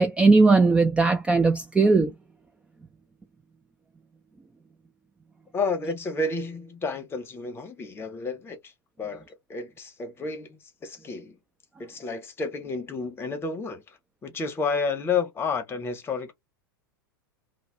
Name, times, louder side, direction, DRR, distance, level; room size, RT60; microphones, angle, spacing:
voice 1, 0.0-2.1, right 3 dB, 10° right, 0.3 m, -18 dB
voice 2, 5.5-8.7 9.0-11.4 11.8-16.3, left 4 dB, 20° left, 0.8 m, -31 dB
2.4 x 2.1 x 3.1 m
figure-of-eight pair, 90°, 12 cm